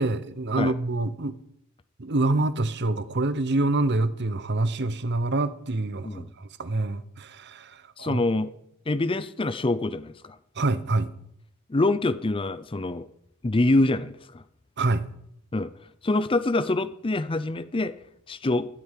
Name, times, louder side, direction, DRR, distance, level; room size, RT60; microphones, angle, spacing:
voice 1, 0.0-1.3 2.0-8.2 10.6-11.1 14.8-15.1, right 2 dB, 50° right, 14 dB, 0.9 m, -26 dB
voice 2, 8.0-8.5 8.9-10.4 11.7-13.1 13.4-14.4 15.5-15.7 16.0-17.9 18.3-18.7, left 2 dB, 25° left, 15 dB, 0.6 m, -25 dB
13.5 x 8.6 x 9.1 m, 0.77 s
head